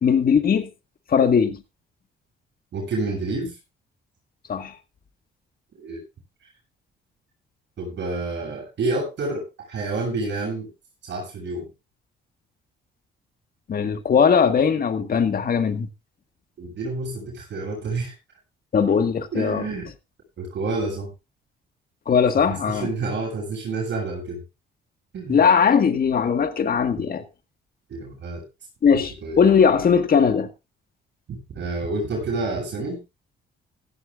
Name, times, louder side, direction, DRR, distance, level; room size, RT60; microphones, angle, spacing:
voice 1, 0.0-0.7 1.1-1.6 4.5-4.7 13.7-15.9 18.7-19.6 22.1-22.9 25.3-27.2 28.8-30.5, left 6 dB, 50° left, 1.8 m, -19 dB
voice 2, 2.7-3.5 5.8-6.0 7.8-10.7 11.0-11.7 16.6-18.1 19.3-19.9 20.4-21.1 22.4-24.4 25.1-25.4 27.9-28.4 28.9-29.4 31.3-33.0, right 3 dB, 65° right, 7.9 m, -29 dB
16.0 x 14.5 x 2.5 m
cardioid pair, 90°, 20 cm